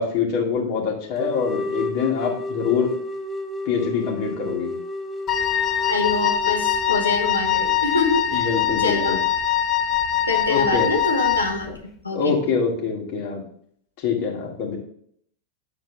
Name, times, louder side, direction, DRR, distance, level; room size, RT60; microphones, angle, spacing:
voice 1, 0.0-2.9 3.7-4.7 8.3-9.2 10.5-10.9 12.1-13.4 14.0-14.8, left 6 dB, 45° left, -2 dB, 2.4 m, -24 dB
sound 1, 1.2-7.9, left 1 dB, 5° right, 0.8 m, -32 dB
Wind instrument woodwind instrument, 5.3-11.6, left 9 dB, 30° left, 0.6 m, -23 dB
voice 2, 5.9-8.5 8.8-9.2 10.3-12.4, left 3 dB, 80° left, 2 dB, 1.2 m, -25 dB
9.4 x 4.5 x 3.6 m, 0.63 s
figure-of-eight pair, 90°, 0 cm